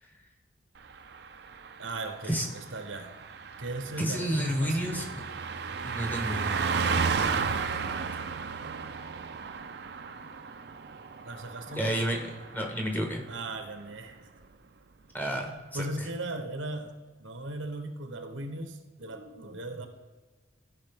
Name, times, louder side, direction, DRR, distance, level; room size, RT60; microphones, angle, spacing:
Car passing by, 0.8-12.8 13.1-13.3, right 5 dB, 55° right, 0.5 m, -34 dB
voice 1, 1.8-3.1 3.6-5.1 8.6-8.9 11.2-11.9 13.3-14.3 15.3-19.9, right 2 dB, 85° right, 7 dB, 1.1 m, -38 dB
voice 2, 4.0-5.2 5.8-6.7 11.8-12.2 12.5-13.3 15.1-15.8, equal, 10° left, 3 dB, 1.0 m, -30 dB
14.0 x 5.1 x 3.6 m, 1.4 s
head